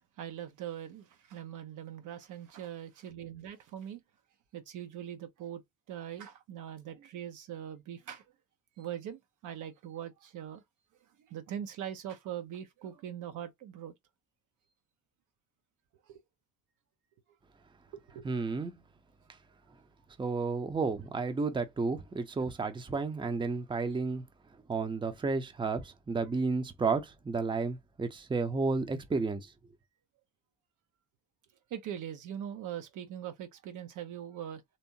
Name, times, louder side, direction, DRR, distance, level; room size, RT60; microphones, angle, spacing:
voice 1, 0.2-4.0 4.5-5.6 5.9-8.2 8.8-10.6 11.2-13.9 16.1-16.2 17.9-18.3 31.7-34.8, right 10 dB, 50° right, 0.7 m, -42 dB
voice 2, 18.2-18.7 20.2-24.2 24.7-29.5, right 4 dB, 10° right, 0.7 m, -32 dB
3.4 x 2.9 x 2.7 m
figure-of-eight pair, 50°, 41 cm